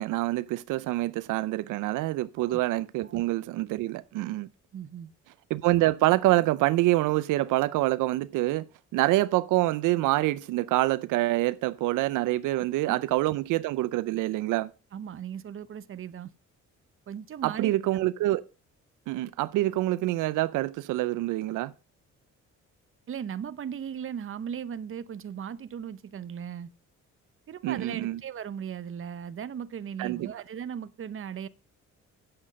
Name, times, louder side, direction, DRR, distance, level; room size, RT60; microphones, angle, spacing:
voice 1, 0.0-4.5 5.5-8.7 8.9-14.7 17.4-18.4 19.1-21.7 27.6-28.2 30.0-30.3, right 17 dB, 90° right, 0.5 m, -26 dB
voice 2, 4.7-5.1 12.9-13.0 14.9-16.3 17.1-18.0 23.1-26.7 27.5-31.5, right 8 dB, 45° right, 0.8 m, -37 dB
8.8 x 7.4 x 5.1 m
cardioid pair, 90°, 30 cm